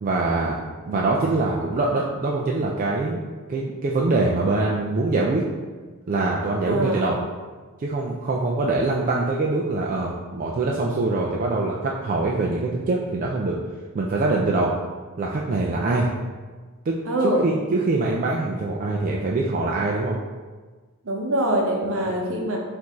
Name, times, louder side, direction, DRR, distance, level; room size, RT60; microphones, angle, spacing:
voice 1, 0.0-0.6 0.9-3.2 3.5-5.4 6.1-7.2 7.8-13.6 13.9-14.7 15.2-16.1 16.9-17.0 17.4-20.2 21.9-22.1, right 3 dB, 40° right, -3 dB, 0.3 m, -24 dB
voice 2, 6.6-7.1 17.0-17.5 21.0-22.6, right 1 dB, 65° right, -1 dB, 0.8 m, -24 dB
4.6 x 2.6 x 3.6 m, 1.4 s
head